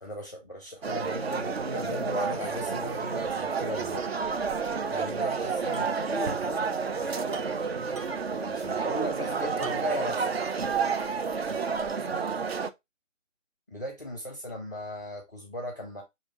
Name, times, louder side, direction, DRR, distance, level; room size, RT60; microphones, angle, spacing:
voice 1, 0.0-4.1 4.9-5.9 6.2-6.4 8.3-10.1 13.7-16.0, equal, 15° left, 0.6 m, -37 dB
sound 1, 0.8-12.7, right 5 dB, 55° right, 0.6 m, -30 dB
voice 2, 1.2-2.0 5.7-8.2 8.6-10.3 11.8-12.4, equal, 70° right, 1.6 m, -41 dB
sound 2, 5.7-6.0 6.3-6.4 7.3-8.4 9.6-10.1 10.6-10.7 11.5-11.9, right 1 dB, 85° right, 1.3 m, -48 dB
6.1 x 2.7 x 2.9 m
figure-of-eight pair, 145°, 38 cm